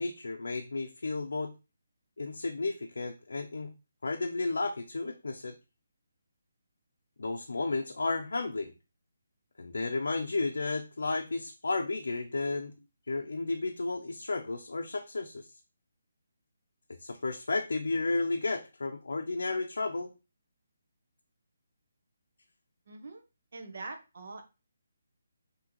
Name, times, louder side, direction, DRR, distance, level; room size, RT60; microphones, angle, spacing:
voice 1, 0.0-1.5 2.2-3.7 4.0-5.6 7.2-8.7 9.6-12.7 13.1-15.5 17.0-20.1, left 3 dB, 80° left, 3 dB, 0.5 m, -33 dB
voice 2, 22.9-23.2 23.5-24.4, right 3 dB, 40° right, 4 dB, 0.8 m, -43 dB
5.9 x 2.8 x 3.0 m, 0.28 s
hypercardioid pair, 180°, 0 cm